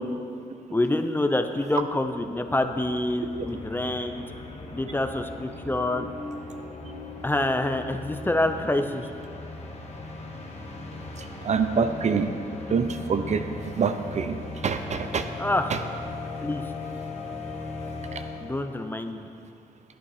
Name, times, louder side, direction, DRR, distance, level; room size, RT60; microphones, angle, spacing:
voice 1, 0.7-4.2 4.7-6.1 7.2-9.0 15.4-15.7 16.4-16.7 18.4-19.2, left 1 dB, 15° left, 7 dB, 0.7 m, -26 dB
sound 1, 1.9-18.9, left 2 dB, 45° left, 1.5 m, -38 dB
voice 2, 11.4-12.3 12.7-13.4 13.8-14.4 14.6-15.2, right 5 dB, 50° right, 8 dB, 0.7 m, -25 dB
10.0 x 9.0 x 4.9 m, 2.4 s
cardioid pair, 65°, 15 cm